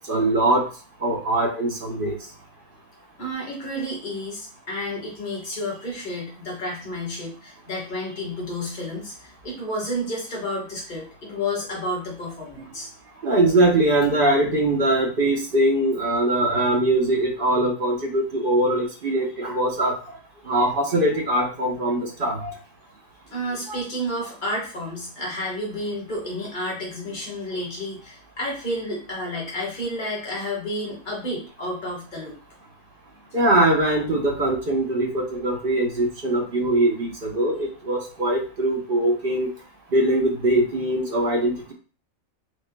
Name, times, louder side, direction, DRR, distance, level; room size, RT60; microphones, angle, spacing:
voice 1, 0.1-0.6 1.0-2.2 13.2-19.9 20.5-22.5 23.7-23.8 33.3-39.5 39.9-41.7, right 1 dB, 45° right, 1 dB, 0.9 m, -22 dB
voice 2, 3.2-12.9 23.3-32.4, left 1 dB, 35° left, -3 dB, 1.5 m, -31 dB
6.2 x 2.4 x 2.2 m, 0.38 s
omnidirectional pair, 1.5 m